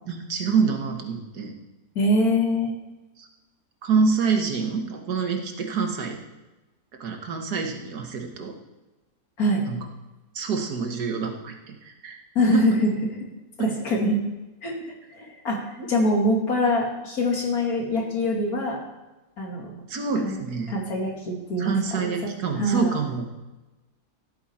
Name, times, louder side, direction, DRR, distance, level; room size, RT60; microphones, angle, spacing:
voice 1, 0.1-1.5 3.2-3.3 3.8-6.2 7.0-8.5 9.7-9.8 10.3-12.2 12.5-12.8 13.6-13.7 15.8-15.9 19.9-20.7 21.6-23.2, right 5 dB, 75° right, 3 dB, 1.9 m, -26 dB
voice 2, 2.0-2.8 9.4-9.6 12.4-12.9 13.6-14.2 14.6-14.7 15.1-15.6 15.9-18.8 19.4-19.7 20.2-20.4 20.7-21.7 22.0-22.1 22.6-22.9, left 1 dB, 65° left, 0 dB, 2.5 m, -23 dB
14.5 x 8.6 x 4.3 m, 1.1 s
omnidirectional pair, 1.7 m